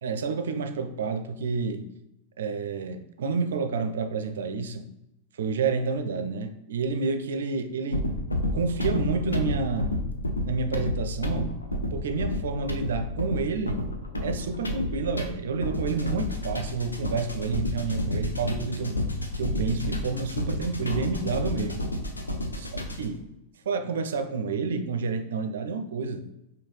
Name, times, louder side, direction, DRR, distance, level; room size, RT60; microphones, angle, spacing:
voice 1, 0.0-1.9 2.4-4.9 5.4-8.1 8.5-9.9 10.5-11.6 11.9-13.9 14.2-19.0 19.4-21.8 23.0-23.2 23.7-26.3, right 4 dB, 65° right, 8 dB, 0.4 m, -29 dB
sound 1, 7.9-23.2, left 1 dB, 80° left, 0.5 m, -30 dB
5.3 x 2.2 x 3.2 m, 0.86 s
figure-of-eight pair, 90°, 0 cm